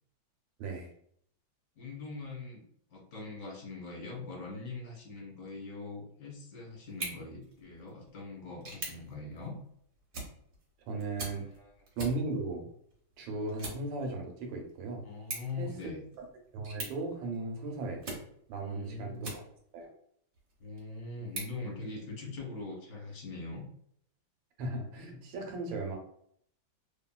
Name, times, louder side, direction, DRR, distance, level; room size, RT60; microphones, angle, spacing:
voice 1, 0.6-0.9 10.9-11.4 12.0-12.7 13.2-15.0 15.5-16.2 16.5-18.0 18.5-19.4 19.7-19.9 24.6-26.0, right 3 dB, 80° right, 2 dB, 1.4 m, -36 dB
voice 2, 1.8-2.6 2.9-9.5 11.6-11.7 15.0-16.0 18.6-19.3 20.6-23.6, left 3 dB, 50° left, -1 dB, 1.1 m, -42 dB
sound 1, 6.8-19.8 20.3-22.4, right 2 dB, 55° right, 1.0 m, -46 dB
2.9 x 2.6 x 2.2 m, 0.66 s
omnidirectional pair, 2.1 m